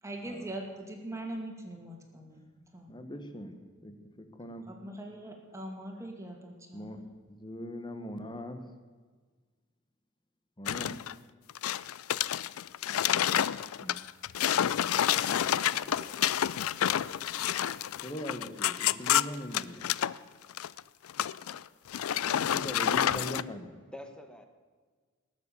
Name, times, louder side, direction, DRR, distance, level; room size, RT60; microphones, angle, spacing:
voice 1, 0.0-2.4 2.7-2.9 4.7-7.1, right 1 dB, 15° right, 1 dB, 2.3 m, -41 dB
voice 2, 2.9-3.6 3.8-3.9 4.4-4.7 6.7-7.0 7.3-8.6 10.6-10.9 13.8-14.0 18.0-19.8 22.5-23.7, equal, 20° left, 7 dB, 1.3 m, -40 dB
sound 1, 10.7-11.1 11.5-20.1 20.5-20.8 21.1-21.6 21.9-23.4, left 10 dB, 90° left, 0.4 m, -29 dB
voice 3, 15.1-16.2 23.9-24.5, left 1 dB, 5° left, 6 dB, 1.3 m, -49 dB
19.0 x 7.3 x 8.5 m, 1.5 s
head